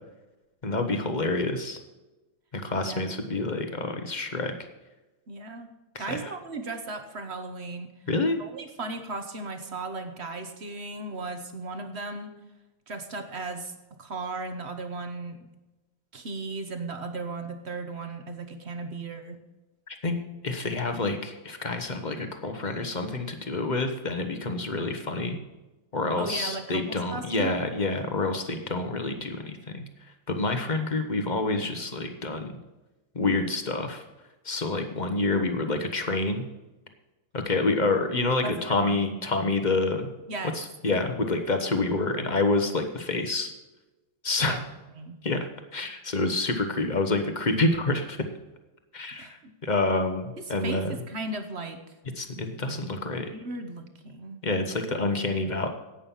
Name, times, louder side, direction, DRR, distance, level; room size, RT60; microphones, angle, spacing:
voice 1, 0.6-1.8 2.5-4.5 5.9-6.3 8.1-8.4 19.9-20.2 20.4-25.4 25.9-29.8 30.3-32.5 33.1-34.0 34.4-36.5 37.3-40.1 40.5-43.5 44.2-44.6 45.2-48.2 48.9-51.0 52.2-53.3 54.4-55.7, left 2 dB, 35° left, 6 dB, 0.7 m, -28 dB
voice 2, 5.3-5.7 6.0-7.9 8.4-12.3 12.9-13.7 14.0-15.4 16.1-19.4 26.2-27.6 38.4-39.0 40.3-40.6 44.5-44.6 45.0-45.2 49.1-49.5 50.4-51.8 53.3-54.4, right 3 dB, 45° right, 7 dB, 0.9 m, -36 dB
11.5 x 8.9 x 5.6 m, 1.1 s
omnidirectional pair, 2.4 m